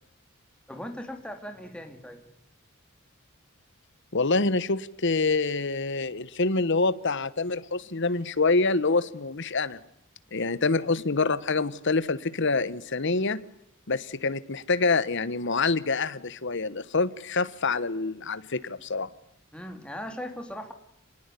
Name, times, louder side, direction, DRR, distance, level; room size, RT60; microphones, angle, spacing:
voice 1, 0.7-2.2 19.5-20.7, equal, 5° left, 5 dB, 2.6 m, -38 dB
voice 2, 4.1-9.8 10.3-13.4 13.9-19.1, left 3 dB, 60° left, 15 dB, 1.3 m, -26 dB
26.5 x 20.0 x 8.4 m, 0.75 s
head